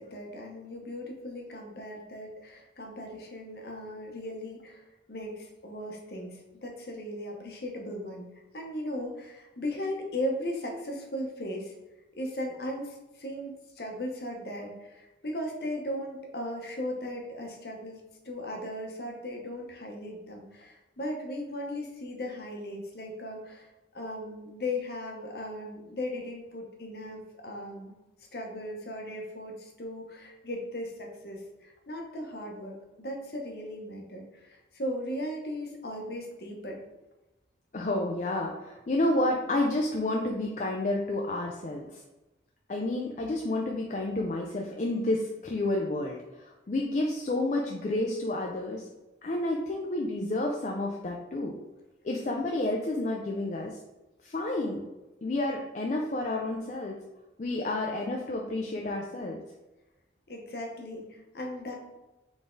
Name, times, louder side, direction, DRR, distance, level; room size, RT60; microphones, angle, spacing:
voice 1, 0.0-8.3 8.5-11.7 12.2-23.7 23.9-27.9 28.3-36.8 60.3-61.8, left 1 dB, 60° left, 1 dB, 0.9 m, -37 dB
voice 2, 37.7-41.9 42.7-48.8 49.2-51.6 52.0-53.7 54.2-54.8 55.2-57.0 57.4-59.4, left 2 dB, 40° left, 0 dB, 0.4 m, -30 dB
4.0 x 3.5 x 3.8 m, 1.0 s
head